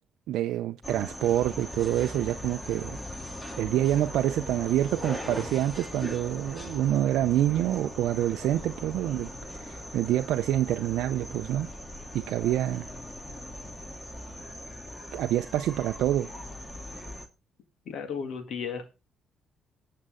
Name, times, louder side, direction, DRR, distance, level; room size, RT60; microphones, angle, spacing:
voice 1, 0.3-3.0 3.6-11.7 12.1-12.9 15.1-16.3, right 12 dB, 85° right, 0.5 m, -27 dB
sound 1, 0.8-17.3, left 1 dB, 10° left, 2.1 m, -40 dB
voice 2, 17.9-18.9, left 6 dB, 70° left, 2.1 m, -34 dB
18.5 x 6.6 x 3.8 m
cardioid pair, 90°, 0 cm